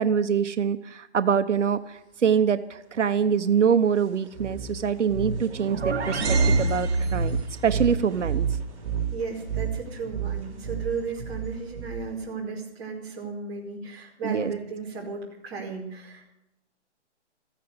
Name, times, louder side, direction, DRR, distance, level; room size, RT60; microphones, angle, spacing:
voice 1, 0.0-7.4 7.6-8.5 14.2-14.5, right 7 dB, 85° right, 10 dB, 1.0 m, -24 dB
sound 1, 4.3-12.3, right 5 dB, 30° right, 2.9 m, -31 dB
sound 2, 5.3-7.6, right 3 dB, 60° right, 2.0 m, -26 dB
voice 2, 9.1-16.3, right 4 dB, 10° right, -5 dB, 2.3 m, -35 dB
14.5 x 10.0 x 7.9 m, 0.85 s
hypercardioid pair, 175°, 35 cm